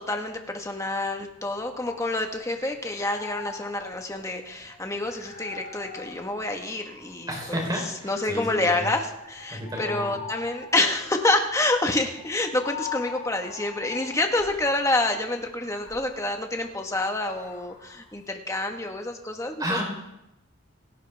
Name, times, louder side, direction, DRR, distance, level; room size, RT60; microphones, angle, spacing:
voice 1, 0.0-7.6 8.0-19.8, left 2 dB, 15° left, 4 dB, 1.5 m, -28 dB
sound 1, 1.4-2.5 2.9-7.3 8.0-14.7 15.5-18.1, left 6 dB, 60° left, 3.9 m, -42 dB
voice 2, 7.3-8.9 9.5-10.1 19.6-19.8, equal, 20° right, 0 dB, 3.9 m, -31 dB
28.0 x 10.5 x 3.5 m, 0.91 s
head